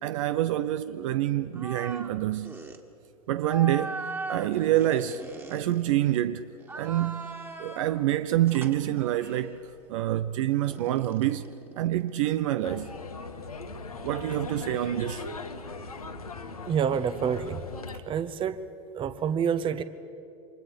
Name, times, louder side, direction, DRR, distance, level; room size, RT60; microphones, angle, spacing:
voice 1, 0.0-2.6 3.3-4.0 4.3-5.2 5.5-9.6 9.9-11.5 11.8-12.9 14.0-15.2, right 13 dB, 60° right, 0.7 m, -27 dB
sound 1, 1.5-2.2 2.4-2.8 3.4-6.2 6.6-8.0 8.5-9.5 10.6-12.4, right 3 dB, 15° right, 1.9 m, -40 dB
sound 2, 12.6-18.0, left 3 dB, 90° left, 1.6 m, -39 dB
voice 2, 16.7-17.6 18.1-18.6 18.9-19.8, right 7 dB, 30° right, 1.0 m, -27 dB
29.0 x 25.0 x 5.2 m
hypercardioid pair, 90°, 18 cm